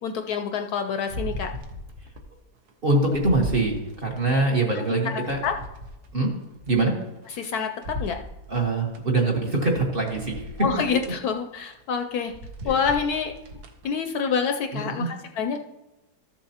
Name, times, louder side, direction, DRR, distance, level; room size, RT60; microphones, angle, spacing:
voice 1, 0.0-1.5 5.0-5.5 7.3-7.7 8.0-8.2 10.6-12.3 12.6-13.3 13.8-15.6, left 6 dB, 70° left, 5 dB, 1.0 m, -27 dB
sound 1, 1.1-2.3 2.7-4.3 4.8-7.4 7.8-9.0 9.5-9.6 10.0-11.2 11.6-11.8 12.2-13.9 14.3-14.4, equal, 65° right, 1.4 m, -38 dB
voice 2, 2.8-5.4 6.1-6.3 6.7-7.0 8.5-10.4 14.7-15.1, right 2 dB, 35° right, 0 dB, 1.2 m, -23 dB
13.5 x 7.2 x 2.8 m, 0.99 s
omnidirectional pair, 1.9 m